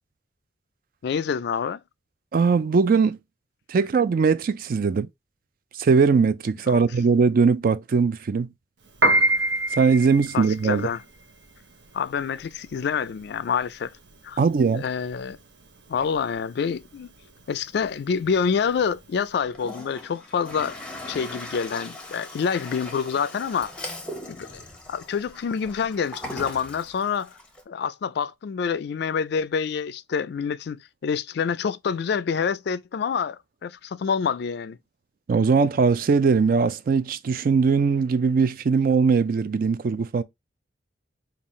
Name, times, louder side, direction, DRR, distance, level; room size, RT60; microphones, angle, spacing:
voice 1, 1.0-1.8 6.7-6.8 10.3-11.0 11.9-13.9 14.2-14.4 14.7-15.4 15.9-17.1 17.5-20.8 21.1-23.7 24.3-24.6 24.9-27.3 27.7-34.8, left 6 dB, 60° left, 0.3 m, -27 dB
voice 2, 2.3-3.2 3.7-5.1 5.8-8.5 9.7-10.9 14.4-14.8 35.3-40.2, right 5 dB, 50° right, 0.4 m, -20 dB
Piano, 8.9-19.3, right 1 dB, 70° right, 0.8 m, -27 dB
Toilet flush, 19.4-27.6, left 1 dB, 5° left, 0.8 m, -39 dB
5.4 x 2.4 x 3.0 m
head